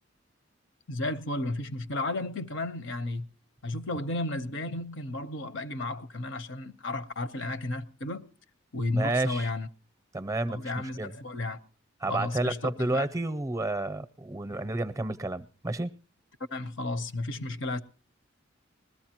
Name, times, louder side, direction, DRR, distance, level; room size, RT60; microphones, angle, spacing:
voice 1, 0.9-3.2 3.6-8.2 8.7-9.7 10.5-11.6 12.1-13.1 16.5-17.8, left 2 dB, 65° left, 0.8 m, -33 dB
voice 2, 8.9-9.5 10.1-11.1 12.0-15.9, right 2 dB, 15° right, 0.6 m, -30 dB
20.5 x 13.5 x 2.9 m
head